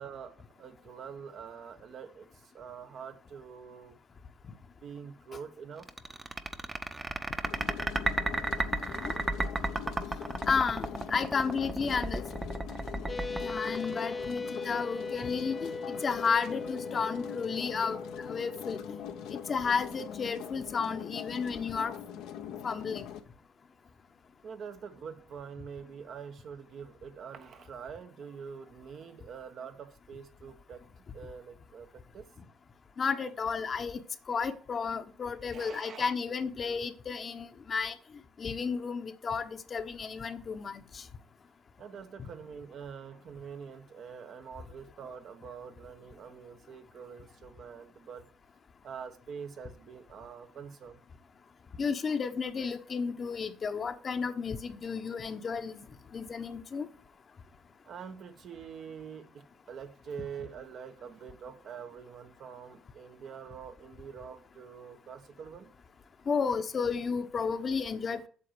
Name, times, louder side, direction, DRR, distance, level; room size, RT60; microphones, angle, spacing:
voice 1, 0.0-4.0 4.8-5.9 24.4-30.8 31.1-32.3 35.5-36.1 41.8-48.3 48.8-51.0 57.8-65.7, right 7 dB, 60° right, 1.3 m, -45 dB
sound 1, 5.8-14.5, right 2 dB, 20° right, 1.0 m, -33 dB
sound 2, 7.4-23.2, left 9 dB, 75° left, 1.1 m, -43 dB
voice 2, 10.5-12.2 13.4-15.7 16.0-18.8 19.3-21.9 22.6-23.1 33.0-34.0 34.3-37.9 38.4-41.0 42.2-42.3 51.8-55.9 56.1-56.9 66.3-68.3, left 5 dB, 45° left, 1.1 m, -32 dB
sound 3, 13.1-21.1, left 3 dB, 25° left, 0.4 m, -40 dB
8.5 x 6.9 x 4.8 m
supercardioid pair, 65°, 0 cm